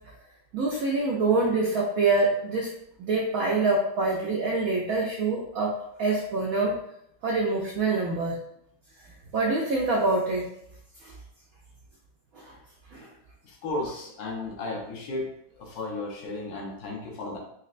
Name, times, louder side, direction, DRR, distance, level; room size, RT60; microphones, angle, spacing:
voice 1, 0.5-2.7 3.0-5.7 6.0-6.7 7.2-8.4 9.3-10.5 11.0-11.1 12.3-12.5 12.9-13.1, right 3 dB, 80° right, -2 dB, 0.8 m, -25 dB
voice 2, 13.4-15.3 15.6-17.4, left 2 dB, 60° left, -1 dB, 1.2 m, -34 dB
4.2 x 2.9 x 2.4 m, 0.75 s
omnidirectional pair, 2.1 m